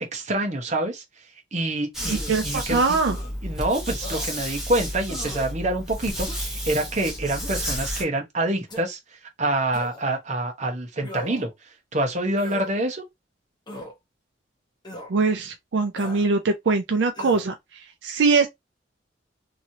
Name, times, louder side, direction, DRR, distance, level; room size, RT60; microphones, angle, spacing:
voice 1, 0.1-1.0 1.5-3.0 3.4-9.0 9.4-11.5 11.9-13.0, right 1 dB, 40° right, 0.9 m, -26 dB
sound 1, 1.9-8.0, equal, 5° right, 1.1 m, -31 dB
sound 2, 2.0-2.4 3.0-3.3 4.0-4.3 5.1-5.5 6.2-6.6 7.3-7.7 8.7-8.9 9.7-10.1 11.0-11.5 12.3-12.7 13.7-13.9 14.8-15.1 16.0-16.3 17.1-17.5, left 1 dB, 25° left, 1.0 m, -39 dB
voice 2, 2.1-3.2 15.1-18.5, right 4 dB, 75° right, 0.4 m, -22 dB
3.1 x 2.7 x 2.7 m
head